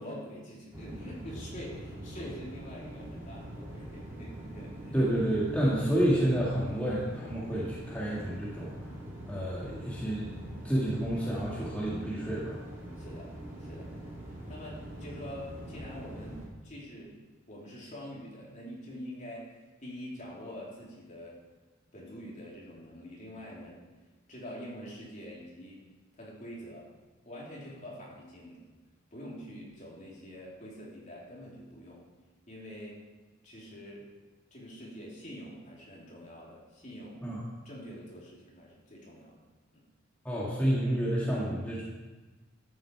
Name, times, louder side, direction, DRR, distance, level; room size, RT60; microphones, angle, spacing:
voice 1, 0.0-5.3 13.0-13.3 13.6-13.9 14.5-17.1 17.5-19.5 19.8-21.4 21.9-23.8 24.3-25.8 26.1-26.9 27.2-28.7 29.1-32.0 32.5-33.0 33.4-34.1 34.5-37.3 37.6-39.4 39.7-39.8, equal, 40° left, -4 dB, 3.2 m, -45 dB
sound 1, 0.7-16.5, right 1 dB, 15° right, 2.8 m, -43 dB
voice 2, 4.9-8.7 9.3-10.3 10.6-12.6 37.2-37.4 40.2-41.8, right 1 dB, 10° left, -7 dB, 1.8 m, -29 dB
13.0 x 7.9 x 4.7 m, 1.2 s
head